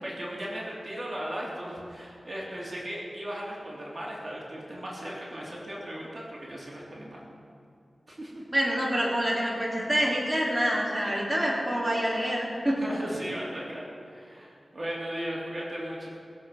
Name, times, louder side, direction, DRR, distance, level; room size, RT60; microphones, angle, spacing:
voice 1, 0.0-7.2 8.1-8.4 12.8-16.1, equal, 35° right, -4 dB, 3.0 m, -37 dB
voice 2, 8.5-12.8, equal, 10° right, -4 dB, 3.1 m, -27 dB
20.0 x 7.8 x 5.7 m, 2.7 s
wide cardioid pair, 65°, 0 cm